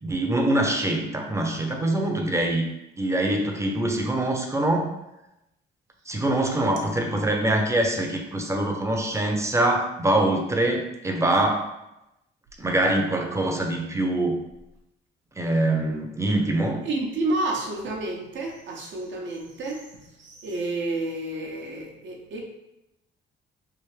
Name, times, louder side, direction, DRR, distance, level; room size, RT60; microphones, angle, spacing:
voice 1, 0.0-2.7 3.0-4.9 6.1-11.7 12.6-14.4 15.4-16.8, right 1 dB, 15° right, 2 dB, 0.6 m, -24 dB
voice 2, 16.8-19.8 20.2-22.4, right 2 dB, 70° right, 0 dB, 0.8 m, -30 dB
3.4 x 2.5 x 3.2 m, 0.89 s
cardioid pair, 90°, 20 cm